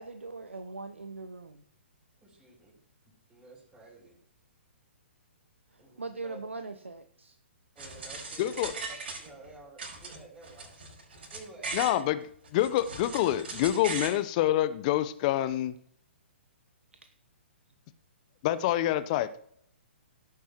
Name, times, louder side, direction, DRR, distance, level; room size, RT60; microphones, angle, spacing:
voice 1, 0.0-1.6 5.7-7.4 17.0-17.1, right 3 dB, 80° right, 8 dB, 0.9 m, -41 dB
voice 2, 2.2-2.8 3.0-4.2 5.8-6.4 7.7-10.8 11.3-12.1, right 2 dB, 10° right, -6 dB, 6.0 m, -51 dB
sound 1, 7.8-9.5 9.8-12.0 12.4-14.2, right 3 dB, 60° right, 5.5 m, -39 dB
voice 3, 8.4-8.7 11.7-12.2 12.5-15.7 18.4-19.3, left 13 dB, 35° left, 14 dB, 0.8 m, -26 dB
17.0 x 9.6 x 3.0 m, 0.64 s
figure-of-eight pair, 120°, 7 cm